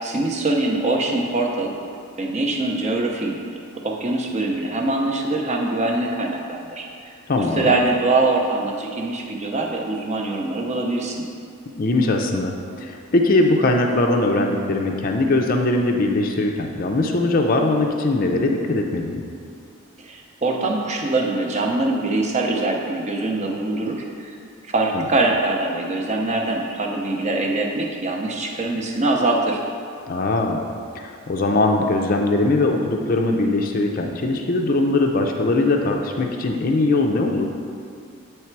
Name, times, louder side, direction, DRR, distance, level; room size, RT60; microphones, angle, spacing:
voice 1, 0.0-1.7 2.2-3.4 3.8-11.3 20.0-24.4 24.6-29.6, right 2 dB, 30° right, 0 dB, 0.6 m, -23 dB
voice 2, 7.3-7.7 11.8-12.5 12.8-19.2 24.9-25.0 30.1-30.6 31.0-37.5, left 2 dB, 40° left, 2 dB, 0.4 m, -20 dB
8.5 x 3.3 x 4.5 m, 2.4 s
head